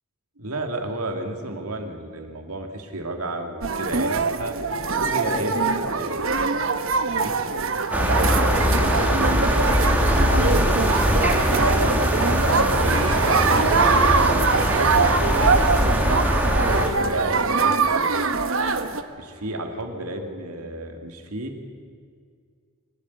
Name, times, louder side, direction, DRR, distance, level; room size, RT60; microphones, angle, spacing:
voice 1, 0.4-4.6 4.9-6.1 7.0-7.4 8.1-14.7 15.3-18.2 19.2-21.7, right 1 dB, 90° right, 4 dB, 2.5 m, -33 dB
sound 1, 3.6-19.0, right 4 dB, 60° right, 1.1 m, -23 dB
sound 2, 7.9-16.9, equal, 5° right, 1.9 m, -21 dB
23.5 x 12.5 x 9.6 m, 2.1 s
head